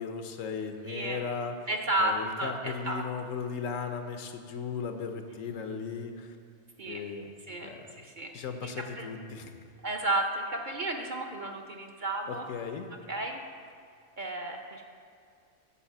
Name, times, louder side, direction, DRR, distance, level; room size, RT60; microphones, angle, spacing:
voice 1, 0.0-1.5 2.0-6.4 6.8-7.3 7.6-7.9 8.3-9.5 12.3-12.8, left 5 dB, 80° left, 6 dB, 1.2 m, -36 dB
voice 2, 0.9-1.2 1.7-3.0 6.8-7.0 7.5-7.7 8.0-8.3 8.6-9.1 9.8-12.5 13.1-13.4 14.2-14.9, right 2 dB, 45° right, 2 dB, 0.7 m, -32 dB
10.0 x 4.7 x 7.1 m, 2.2 s
omnidirectional pair, 1.3 m